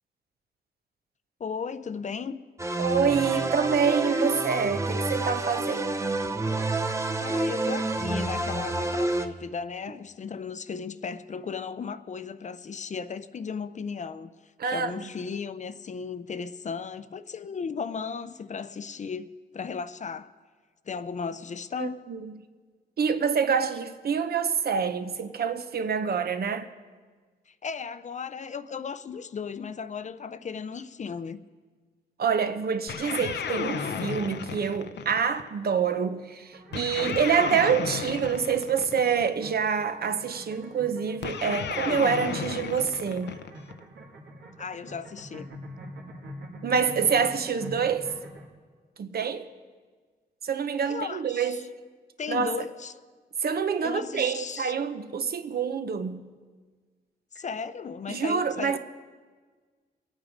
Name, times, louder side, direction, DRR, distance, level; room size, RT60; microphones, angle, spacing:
voice 1, 1.4-2.4 3.4-3.5 7.2-14.3 14.6-20.3 20.9-22.0 27.5-31.4 44.6-45.5 50.9-51.7 52.2-53.0 53.8-54.7 57.3-58.8, left 6 dB, 45° left, 0.5 m, -36 dB
sound 1, 2.6-9.3, right 2 dB, 15° right, 0.6 m, -28 dB
voice 2, 2.8-5.9 14.6-14.9 21.8-22.3 23.0-26.7 32.2-43.3 46.6-48.1 49.0-49.4 50.4-51.6 52.3-52.5 53.4-56.2 57.4-57.5 58.1-58.8, right 6 dB, 65° right, 0.8 m, -26 dB
sound 2, 32.9-35.5 36.7-39.3 41.2-43.8, left 7 dB, 90° left, 0.7 m, -33 dB
sound 3, 36.5-48.5, right 1 dB, 90° right, 2.2 m, -45 dB
22.5 x 9.0 x 5.1 m
wide cardioid pair, 115°, 18 cm